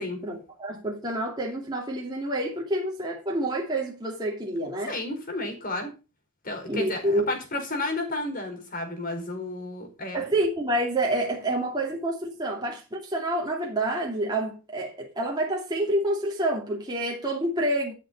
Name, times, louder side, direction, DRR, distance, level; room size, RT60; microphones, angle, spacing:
voice 1, 0.0-4.9 6.7-7.2 10.1-17.9, right 1 dB, 20° right, 2.7 m, -28 dB
voice 2, 4.9-5.9 6.4-10.2, left 2 dB, 40° left, 4.8 m, -32 dB
12.5 x 7.5 x 5.4 m
head